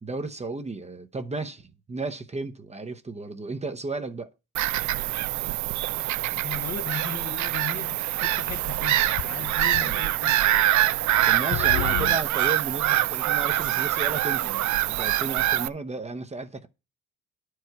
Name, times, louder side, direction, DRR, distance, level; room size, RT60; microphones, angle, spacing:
voice 1, 0.0-4.3 9.8-10.0 11.3-16.7, right 3 dB, 20° right, 0.8 m, -34 dB
Bird vocalization bird call bird song / Gull seagull, 4.5-15.7, right 14 dB, 70° right, 0.5 m, -24 dB
voice 2, 6.4-7.9 8.2-10.4, left 7 dB, 50° left, 0.9 m, -37 dB
sound 1, 6.9-8.0 8.3-10.0 10.3-10.6 10.9-12.2, left 17 dB, 75° left, 0.5 m, -36 dB
10.5 x 4.8 x 4.6 m
cardioid pair, 90°, 30 cm